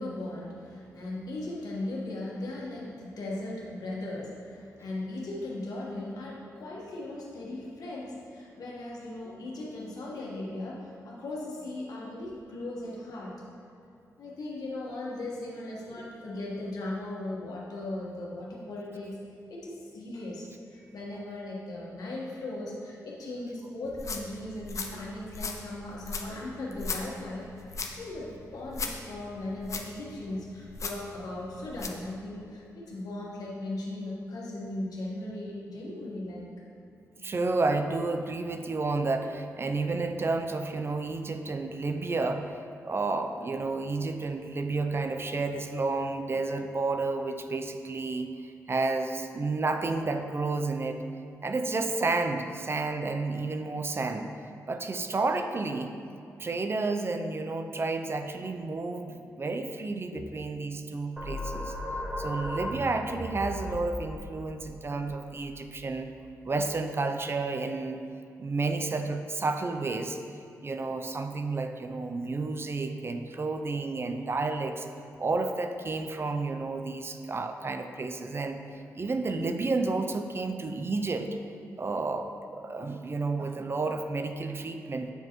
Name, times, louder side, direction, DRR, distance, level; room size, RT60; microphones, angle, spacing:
voice 1, 0.0-13.4 14.2-19.2 19.5-27.7 27.9-36.5 60.1-60.3, left 2 dB, 80° left, -4 dB, 1.4 m, -38 dB
sound 1, 23.8-32.0, left 4 dB, 55° left, 0.6 m, -39 dB
voice 2, 37.2-42.6 42.8-48.3 48.7-51.0 51.4-54.3 54.7-55.9 56.4-61.7 62.2-66.1 66.4-68.0 68.4-70.2 70.6-74.9 75.2-78.6 78.9-81.4 81.8-85.1, right 3 dB, 40° right, 7 dB, 0.5 m, -31 dB
sound 2, 61.2-66.4, left 1 dB, 10° right, 1.0 m, -37 dB
7.8 x 4.8 x 3.0 m, 2.7 s
cardioid pair, 60°, 6 cm